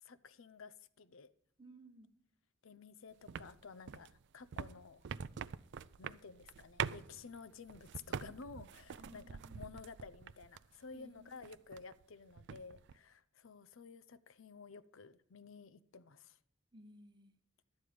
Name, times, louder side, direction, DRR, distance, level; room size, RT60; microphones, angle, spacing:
voice 1, 0.0-1.3 2.6-5.0 6.0-16.4, left 5 dB, 70° left, 15 dB, 0.6 m, -53 dB
voice 2, 1.6-2.1 9.0-9.6 10.9-11.3 16.7-17.3, equal, 20° right, 7 dB, 0.9 m, -58 dB
sound 1, 3.3-10.8 11.2-12.0 12.3-13.0, right 7 dB, 60° right, 0.4 m, -45 dB
12.5 x 9.5 x 5.0 m, 0.72 s
head